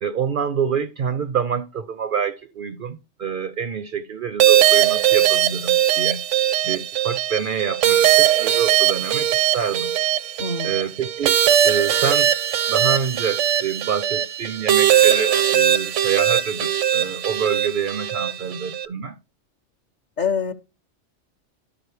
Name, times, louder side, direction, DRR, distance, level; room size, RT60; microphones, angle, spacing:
voice 1, 0.0-6.2 6.6-9.9 10.6-11.4 11.6-12.3 12.7-19.2, right 7 dB, 55° right, 0.6 m, -27 dB
sound 1, 4.4-18.9, right 11 dB, 80° right, 1.0 m, -19 dB
voice 2, 10.4-10.7 20.2-20.5, left 5 dB, 45° left, 0.7 m, -24 dB
12.5 x 4.9 x 3.2 m
omnidirectional pair, 1.2 m